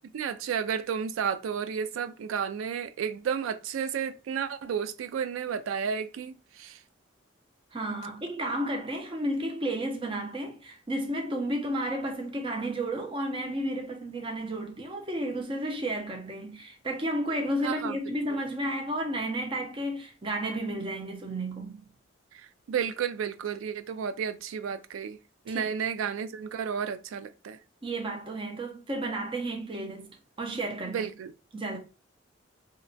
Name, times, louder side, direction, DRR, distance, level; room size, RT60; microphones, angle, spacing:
voice 1, 0.1-6.8 17.6-18.0 22.7-25.2 25.5-27.6 30.9-31.3, right 7 dB, 85° right, 0.3 m, -32 dB
voice 2, 7.7-21.8 25.5-25.7 27.8-30.1 30.4-31.1 31.5-31.8, right 1 dB, 25° right, 0.5 m, -32 dB
2.8 x 2.1 x 2.6 m
head